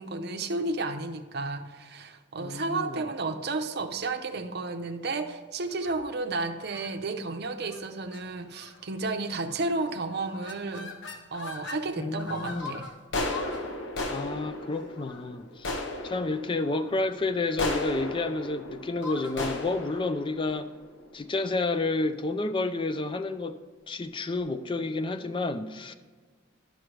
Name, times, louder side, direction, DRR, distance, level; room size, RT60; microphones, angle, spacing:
voice 1, 0.0-12.9, right 3 dB, 55° right, 0.6 m, -32 dB
voice 2, 2.4-3.0 12.0-12.8 14.1-15.7 16.0-20.7 21.1-23.6 23.9-25.9, left 3 dB, 25° left, 0.4 m, -30 dB
sound 1, 5.7-6.1 6.7-6.9 7.6-7.8 8.1-8.2 8.5-8.9 9.5-9.8 10.1-11.8 12.2-21.4, left 2 dB, 80° left, 1.1 m, -36 dB
12.0 x 6.3 x 3.2 m
head